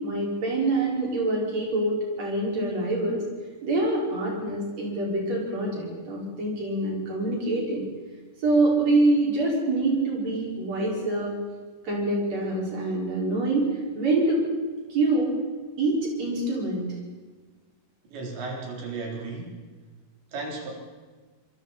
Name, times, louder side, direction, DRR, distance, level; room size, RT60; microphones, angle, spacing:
voice 1, 0.0-3.2 3.6-7.9 8.4-11.4 11.8-13.7 13.9-14.4 14.9-15.3 15.8-16.9, right 2 dB, 40° right, -3 dB, 6.5 m, -25 dB
voice 2, 18.1-19.5 20.3-20.7, right 3 dB, 85° right, -1 dB, 6.3 m, -34 dB
26.5 x 22.5 x 4.4 m, 1.4 s
omnidirectional pair, 5.0 m